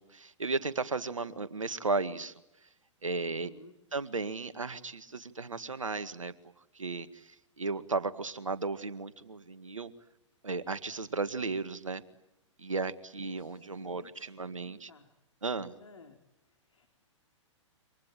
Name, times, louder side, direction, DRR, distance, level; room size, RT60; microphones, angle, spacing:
voice 1, 0.0-2.3 3.0-3.5 3.9-6.3 6.8-7.3 7.6-9.9 10.4-12.0 12.6-14.9 15.4-15.7, right 3 dB, 85° right, 12 dB, 1.9 m, -35 dB
voice 2, 3.3-3.7 13.2-15.1 15.8-16.2 16.5-16.9, left 3 dB, 80° left, 5 dB, 3.7 m, -56 dB
28.5 x 26.0 x 7.7 m, 0.89 s
figure-of-eight pair, 110°, 16 cm